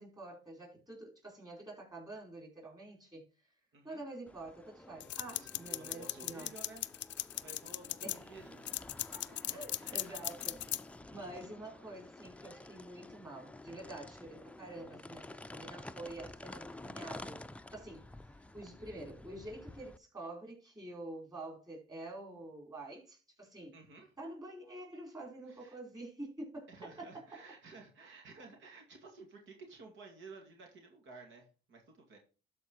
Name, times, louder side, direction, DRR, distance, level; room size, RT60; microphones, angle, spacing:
voice 1, 0.0-3.3 3.8-6.5 8.0-8.3 8.8-8.9 9.5-10.6 11.1-17.4 17.7-18.1 18.5-23.8 24.2-27.4, right 2 dB, 20° right, 4.6 m, -47 dB
voice 2, 3.7-4.1 5.3-6.8 7.4-8.6 9.1-10.0 23.7-24.1 25.5-25.8 26.7-32.2, right 3 dB, 75° right, 2.3 m, -54 dB
sound 1, 4.3-20.0, left 2 dB, 5° left, 0.5 m, -51 dB
sound 2, 5.0-8.2 8.7-10.8, left 14 dB, 65° left, 0.4 m, -38 dB
12.5 x 4.7 x 4.7 m
cardioid pair, 90°, 20 cm